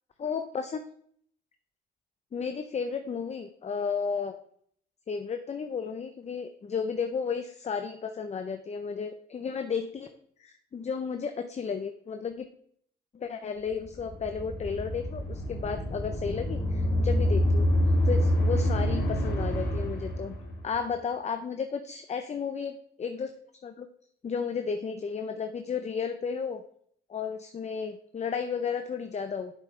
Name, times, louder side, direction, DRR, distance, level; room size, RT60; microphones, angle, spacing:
voice 1, 0.2-0.8 2.3-4.4 5.1-10.1 10.4-12.5 13.1-17.7 18.0-20.3 20.6-23.3 23.6-23.9 24.2-26.6 27.1-29.5, left 6 dB, 35° left, 8 dB, 0.7 m, -33 dB
sound 1, 13.8-20.8, left 1 dB, 55° left, 3.2 m, -27 dB
8.5 x 6.9 x 3.3 m, 0.62 s
cardioid pair, 90°, 20 cm